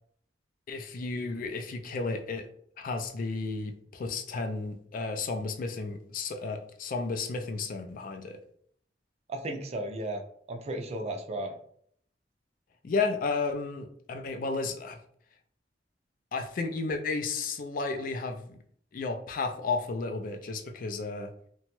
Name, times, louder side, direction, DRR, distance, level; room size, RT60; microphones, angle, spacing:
voice 1, 0.7-2.5 2.8-8.4 12.8-15.0 16.3-18.6 18.9-21.3, left 3 dB, 50° left, 5 dB, 0.4 m, -33 dB
voice 2, 9.3-10.2 10.5-11.6, right 1 dB, 35° right, 4 dB, 0.4 m, -34 dB
2.9 x 2.2 x 2.9 m, 0.64 s
head